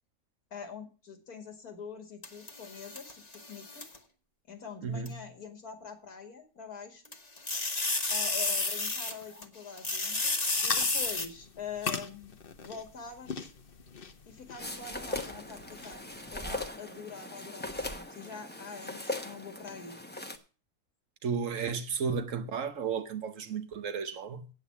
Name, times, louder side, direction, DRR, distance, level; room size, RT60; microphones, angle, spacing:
voice 1, 0.5-3.9 4.5-7.0 8.1-12.4 12.6-13.5 14.3-16.0 16.3-20.0, left 6 dB, 75° left, 2.6 m, -44 dB
sound 1, 2.2-4.0 5.1-5.2 7.0-9.4 9.8-11.3, left 3 dB, 30° left, 1.3 m, -31 dB
voice 2, 4.8-5.2 21.2-24.5, right 6 dB, 60° right, 1.2 m, -33 dB
sound 2, 10.5-16.8, left 5 dB, 45° left, 1.0 m, -41 dB
sound 3, 14.6-20.4, left 1 dB, 10° left, 0.8 m, -39 dB
8.6 x 8.2 x 7.2 m
omnidirectional pair, 1.6 m